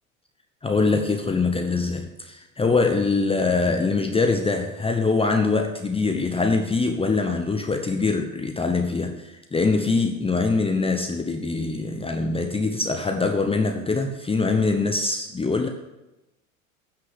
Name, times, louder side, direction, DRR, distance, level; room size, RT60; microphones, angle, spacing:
voice 1, 0.6-15.7, left 3 dB, 15° left, 5 dB, 0.9 m, -23 dB
9.7 x 5.9 x 8.1 m, 1.0 s
hypercardioid pair, 80°, 41 cm